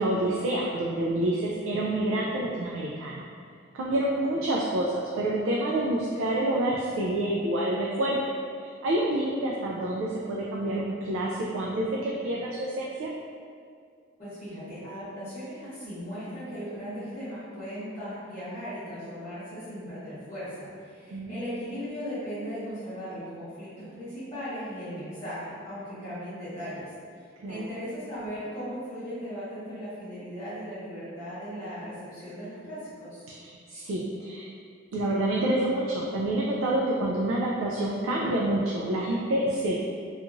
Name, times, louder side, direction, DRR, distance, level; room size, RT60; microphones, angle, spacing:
voice 1, 0.0-3.3 3.7-8.2 8.6-13.1 21.1-21.3 27.4-27.7 33.4-34.5 34.9-39.8, right 1 dB, 90° right, -3 dB, 0.3 m, -28 dB
voice 2, 14.2-26.9 27.2-33.2, equal, 30° left, -18 dB, 1.1 m, -37 dB
2.9 x 2.4 x 2.5 m, 2.2 s
head